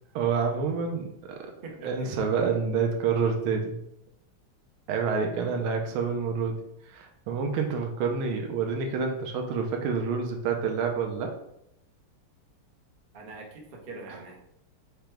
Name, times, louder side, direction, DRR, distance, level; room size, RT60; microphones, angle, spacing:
voice 1, 0.1-1.5 1.8-3.8 4.9-11.3, right 5 dB, 75° right, 3 dB, 1.5 m, -28 dB
voice 2, 1.6-2.1 13.1-14.4, right 3 dB, 50° right, 0 dB, 0.6 m, -43 dB
5.1 x 2.3 x 4.4 m, 0.75 s
omnidirectional pair, 2.4 m